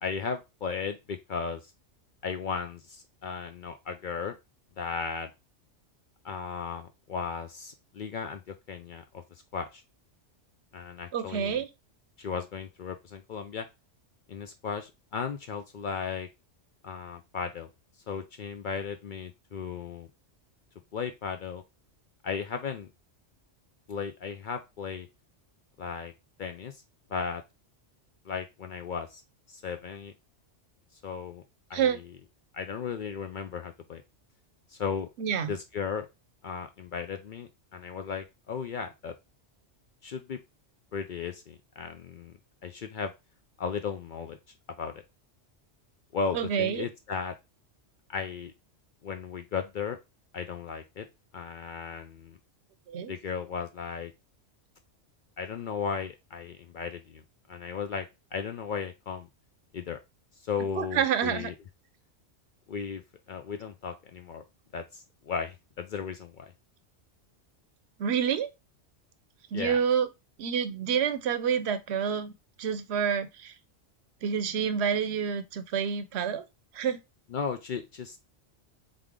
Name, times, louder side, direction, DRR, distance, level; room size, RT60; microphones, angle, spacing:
voice 1, 0.0-1.6 2.2-4.4 4.8-5.3 6.2-9.2 9.5-9.8 10.7-11.6 12.2-13.7 14.3-16.3 16.8-17.7 18.1-20.1 20.9-21.6 22.2-22.9 23.9-25.1 25.8-26.1 26.4-26.8 27.1-27.4 28.3-29.2 29.5-30.1 31.0-31.4 31.7-31.9 32.5-34.0 34.7-35.1 35.5-36.1 36.4-39.2 40.0-40.4 40.9-43.1 43.6-44.4 44.8-44.9 46.1-47.4 48.1-48.5 49.0-50.0 50.3-51.1 51.3-52.4 53.1-54.1 55.4-57.2 57.5-59.3 59.7-60.0 60.4-61.5 62.7-63.0 63.3-64.4 64.7-66.5 69.5-69.8 77.3-78.2, left 6 dB, 60° left, 0.5 m, -35 dB
voice 2, 11.1-11.7 31.7-32.0 35.2-35.5 46.3-46.9 52.9-53.1 60.8-61.5 68.0-68.5 69.5-70.1 70.4-72.3 72.6-73.5 74.2-76.4 76.7-77.0, right 7 dB, 65° right, 0.8 m, -28 dB
3.7 x 3.3 x 3.6 m
omnidirectional pair, 1.2 m